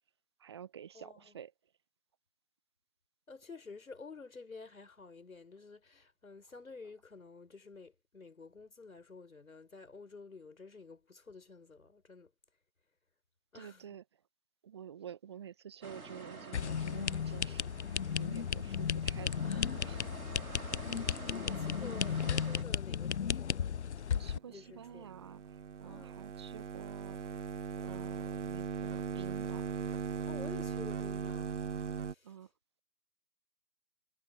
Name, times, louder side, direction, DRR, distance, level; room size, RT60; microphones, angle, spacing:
voice 1, 0.4-1.5 13.5-14.0 14.6-20.1 24.1-27.3 27.8-29.7 32.2-32.5, right 9 dB, 20° right, 0.8 m, -50 dB
voice 2, 0.9-1.4 3.3-12.3 13.5-13.8 19.4-19.9 20.8-23.7 24.5-25.1 25.8-26.2 30.2-31.5 32.0-32.5, left 4 dB, 75° left, 4.4 m, -51 dB
sound 1, 15.8-22.6, right 4 dB, 85° right, 2.0 m, -49 dB
sound 2, 16.5-24.4, left 7 dB, 55° left, 0.5 m, -35 dB
sound 3, 24.5-32.1, right 7 dB, 55° right, 0.7 m, -39 dB
figure-of-eight pair, 145°, 42 cm